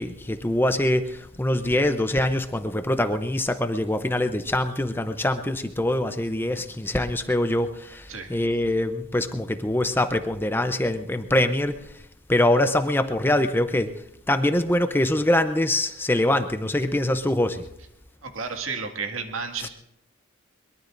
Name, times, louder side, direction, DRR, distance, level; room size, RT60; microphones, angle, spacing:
voice 1, 0.0-11.8 12.3-13.9 14.3-17.7 19.6-19.7, left 1 dB, 10° left, 8 dB, 0.6 m, -24 dB
voice 2, 18.2-19.7, right 5 dB, 75° right, 5 dB, 2.1 m, -32 dB
22.5 x 22.5 x 2.6 m, 0.83 s
head